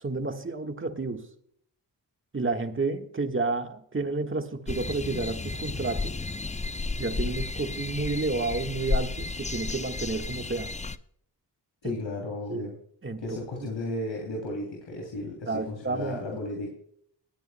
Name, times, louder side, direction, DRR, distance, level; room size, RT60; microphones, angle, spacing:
voice 1, 0.0-1.3 2.3-6.1 7.0-10.7 11.8-12.0 12.5-12.7 13.0-13.4 15.5-16.2, right 3 dB, 25° right, 5 dB, 1.5 m, -30 dB
sound 1, 4.7-11.0, left 3 dB, 15° left, 0.6 m, -32 dB
voice 2, 11.8-12.7 13.2-16.7, left 2 dB, 85° left, -1 dB, 2.9 m, -34 dB
20.5 x 9.1 x 2.2 m, 0.64 s
cardioid pair, 55°, 44 cm